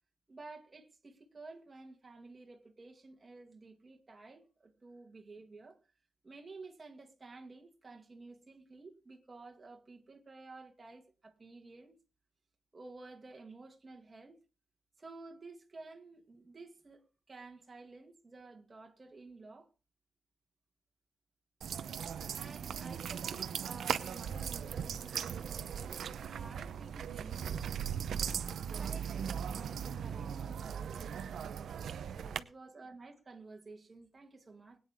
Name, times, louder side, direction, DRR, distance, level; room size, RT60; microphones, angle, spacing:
voice 1, 0.3-5.8 6.2-12.0 12.7-14.4 15.0-19.7 22.3-27.6 28.7-34.8, right 3 dB, 25° right, 2.2 m, -52 dB
sound 1, 21.6-32.4, right 8 dB, 80° right, 0.7 m, -38 dB
21.0 x 9.2 x 3.7 m
wide cardioid pair, 170°, 0 cm